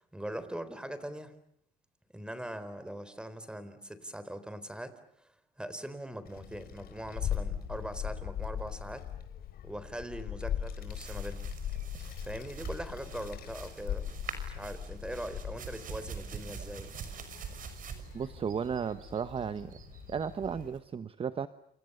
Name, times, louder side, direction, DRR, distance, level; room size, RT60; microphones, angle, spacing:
voice 1, 0.0-1.3 2.1-9.1 9.6-11.4 12.2-14.2 14.5-16.9, right 1 dB, 5° right, 13 dB, 3.9 m, -41 dB
Child speech kid speaking, 6.2-20.7, left 10 dB, 60° left, 4.8 m, -40 dB
Footsteps grass, 10.8-20.8, right 7 dB, 55° right, 5.9 m, -45 dB
voice 2, 18.1-19.8 20.1-21.5, right 6 dB, 35° right, 12 dB, 1.1 m, -34 dB
29.0 x 28.5 x 6.8 m, 0.71 s
cardioid pair, 110°, 17 cm